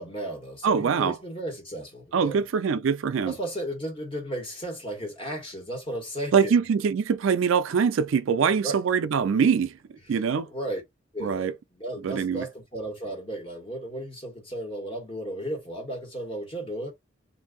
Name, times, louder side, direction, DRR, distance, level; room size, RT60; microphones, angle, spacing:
voice 1, 0.0-2.4 3.2-6.6 8.6-8.8 10.0-10.8 11.1-16.9, right 1 dB, 25° left, 1.5 m, -35 dB
voice 2, 0.6-1.2 2.1-3.3 6.3-9.7 10.1-10.5 11.2-11.5 12.0-12.4, right 6 dB, 75° right, 0.4 m, -23 dB
2.6 x 2.6 x 3.7 m
head